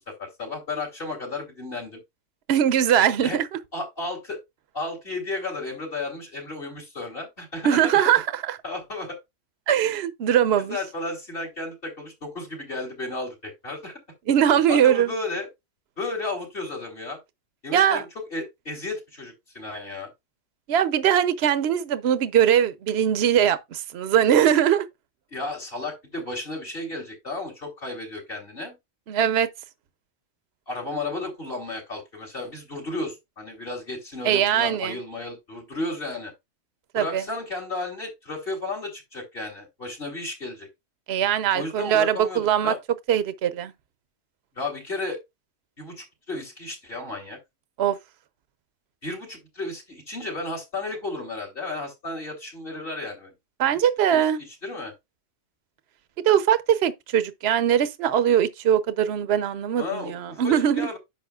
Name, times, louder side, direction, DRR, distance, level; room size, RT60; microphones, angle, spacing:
voice 1, 0.0-2.0 3.2-3.4 3.7-4.4 4.7-8.0 8.6-9.2 10.7-13.9 14.7-15.5 16.0-17.2 17.6-20.1 25.3-28.8 30.7-36.3 36.9-40.7 41.5-42.8 44.6-45.2 45.8-47.4 49.0-53.3 53.6-53.8 54.1-54.2 54.6-54.9 59.8-61.0, left 2 dB, 50° left, 3.5 m, -33 dB
voice 2, 2.5-3.4 7.6-8.6 9.7-10.8 14.3-15.1 17.7-18.0 20.7-24.8 29.1-29.5 34.2-35.0 36.9-37.2 41.1-42.7 43.1-43.7 47.8-48.0 53.6-54.4 56.2-60.9, right 9 dB, 60° right, 1.0 m, -21 dB
10.5 x 7.1 x 2.4 m
omnidirectional pair, 1.2 m